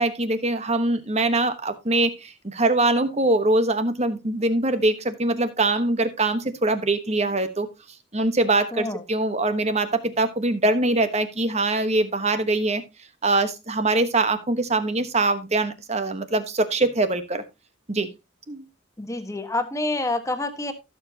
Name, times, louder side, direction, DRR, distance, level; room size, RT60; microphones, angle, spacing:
voice 1, 0.0-7.7 8.1-12.8 13.2-17.4 17.9-18.1 18.5-18.6, right 2 dB, 35° right, 10 dB, 1.2 m, -23 dB
voice 2, 8.7-9.0 19.0-20.7, left 2 dB, 15° left, 7 dB, 1.4 m, -27 dB
16.0 x 7.2 x 2.8 m, 0.24 s
head